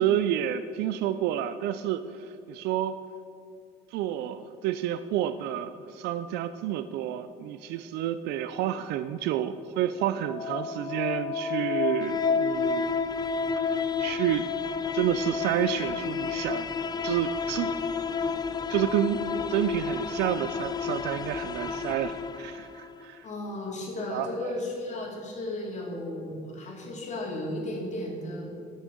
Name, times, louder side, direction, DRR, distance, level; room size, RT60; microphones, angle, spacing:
voice 1, 0.0-3.0 3.9-12.9 13.6-14.5 14.9-16.7 17.0-17.7 18.7-23.2 24.1-24.5, right 11 dB, 85° right, 12 dB, 0.4 m, -29 dB
sound 1, 10.1-23.0, left 5 dB, 25° left, 0.4 m, -30 dB
voice 2, 23.2-28.5, left 1 dB, 45° left, -1 dB, 2.7 m, -34 dB
9.8 x 6.4 x 6.9 m, 2.6 s
cardioid pair, 110°, 17 cm